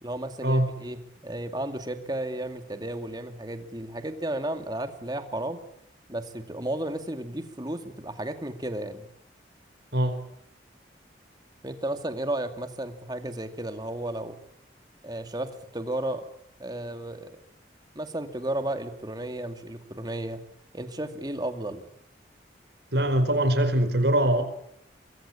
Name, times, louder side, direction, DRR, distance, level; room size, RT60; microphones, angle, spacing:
voice 1, 0.0-5.6 6.1-9.1 11.6-14.4 15.0-16.3 16.6-17.4 17.9-20.4 20.7-21.8, right 1 dB, 20° right, 8 dB, 2.3 m, -33 dB
voice 2, 22.9-24.4, right 1 dB, 70° right, 10 dB, 4.7 m, -22 dB
24.5 x 22.5 x 8.6 m, 0.69 s
head